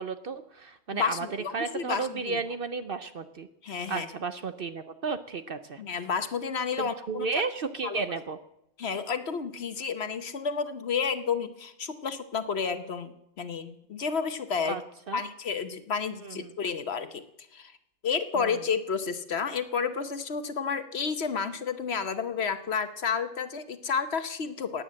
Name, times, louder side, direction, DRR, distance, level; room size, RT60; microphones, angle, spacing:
voice 1, 0.0-1.3 1.5-3.5 3.9-5.8 6.8-8.4 14.7-14.8 15.1-15.2 16.2-16.5 18.3-18.6, right 4 dB, 50° right, 11 dB, 0.8 m, -33 dB
voice 2, 0.9-2.4 3.6-4.1 5.8-7.3 7.8-8.0 8.8-14.8 15.1-17.2 17.5-17.7 18.0-24.8, left 6 dB, 55° left, 10 dB, 1.1 m, -31 dB
17.0 x 9.7 x 7.6 m, 0.79 s
omnidirectional pair, 1.4 m